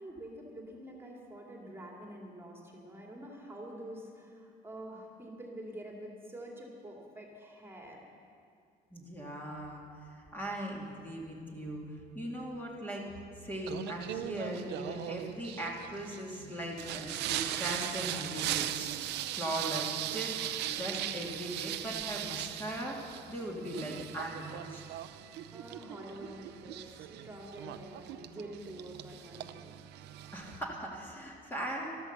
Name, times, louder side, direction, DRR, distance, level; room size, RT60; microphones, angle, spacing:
voice 1, 0.0-8.0 25.5-29.6, right 1 dB, 15° right, -1 dB, 2.4 m, -47 dB
voice 2, 8.9-9.8 10.1-11.8 12.1-13.1 13.4-18.9 19.3-24.4 24.7-24.8 30.3-32.0, right 1 dB, 10° left, -3 dB, 2.3 m, -39 dB
Singing, 13.7-30.6, right 12 dB, 80° right, 0.7 m, -39 dB
13.0 x 13.0 x 6.7 m, 2.4 s
cardioid pair, 110°, 17 cm